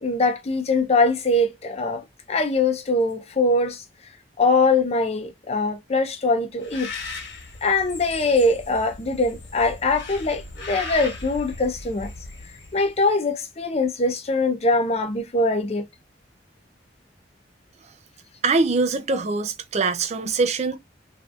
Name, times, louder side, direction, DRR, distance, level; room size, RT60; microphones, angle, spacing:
voice 1, 0.0-3.8 4.4-6.9 7.6-12.1 12.7-15.8, left 2 dB, 35° left, 0.6 m, -22 dB
Bird, 6.6-13.0, left 3 dB, 70° left, 1.3 m, -38 dB
voice 2, 18.4-20.8, right 4 dB, 40° right, 0.5 m, -23 dB
3.2 x 2.7 x 2.4 m
head